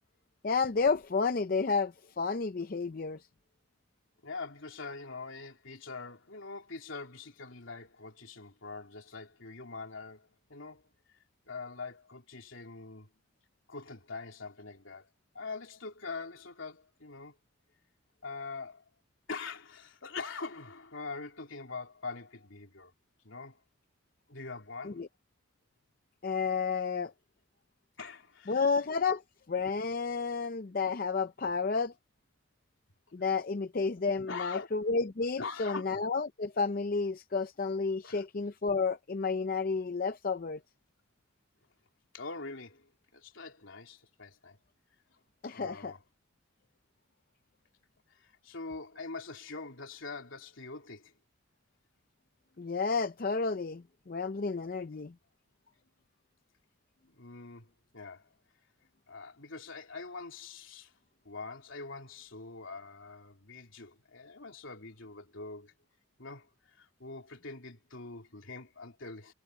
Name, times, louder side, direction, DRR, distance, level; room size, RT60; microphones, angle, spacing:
voice 1, 0.4-3.2 24.8-25.1 26.2-27.1 28.5-29.2 29.5-31.9 33.1-40.6 45.4-45.9 52.6-55.1, left 4 dB, 45° left, 0.5 m, -31 dB
voice 2, 4.2-10.9 11.5-13.1 13.7-15.1 15.3-17.4 18.2-18.8 19.3-22.9 23.2-23.6 24.3-25.0 28.0-28.7 34.3-34.7 35.4-36.0 38.0-38.2 42.1-44.6 45.4-46.0 48.1-51.1 57.1-58.3 59.1-60.9 61.2-65.7 66.2-69.3, left 4 dB, 80° left, 3.2 m, -44 dB
head